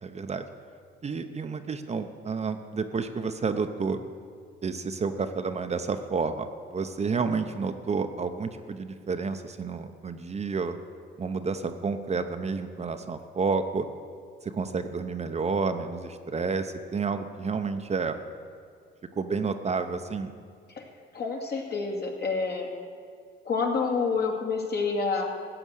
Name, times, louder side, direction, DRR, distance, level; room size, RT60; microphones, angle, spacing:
voice 1, 0.0-0.5 1.0-4.0 4.6-6.5 6.7-10.8 11.2-13.9 14.4-18.2 19.2-20.3, right 4 dB, 35° right, 8 dB, 0.8 m, -30 dB
voice 2, 21.1-22.7 23.5-25.2, left 4 dB, 55° left, 1 dB, 2.2 m, -28 dB
14.5 x 8.0 x 6.4 m, 2.1 s
cardioid pair, 90°, 20 cm